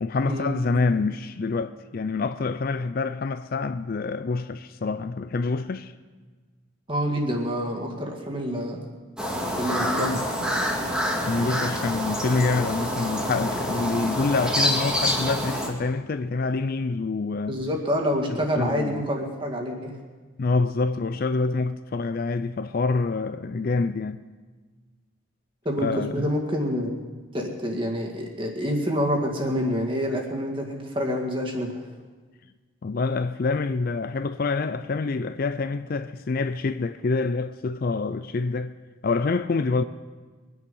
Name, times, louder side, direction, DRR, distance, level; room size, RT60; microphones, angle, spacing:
voice 1, 0.0-5.9 11.3-17.6 18.3-19.0 20.4-24.2 25.8-26.3 32.8-38.7 39.0-39.8, left 3 dB, 45° left, 0.4 m, -26 dB
voice 2, 6.9-8.9 9.6-10.2 17.5-20.0 25.7-27.0 27.3-31.8, equal, 25° right, 2.0 m, -27 dB
sound 1, 9.2-15.7, equal, 5° right, 2.0 m, -27 dB
22.5 x 9.9 x 5.4 m
head